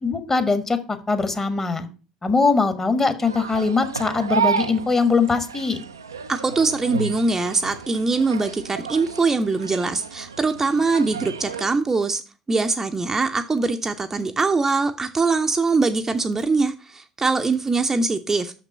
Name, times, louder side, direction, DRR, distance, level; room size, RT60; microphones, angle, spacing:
voice 1, 0.0-0.8 1.1-1.9 2.2-5.8, left 4 dB, 20° left, 10 dB, 1.2 m, -21 dB
sound 1, 3.2-11.8, right 6 dB, 80° right, 0.4 m, -31 dB
voice 2, 6.3-12.2 12.5-18.5, right 3 dB, 20° right, 6 dB, 0.6 m, -22 dB
6.5 x 5.9 x 5.3 m, 0.35 s
figure-of-eight pair, 60°, 2 cm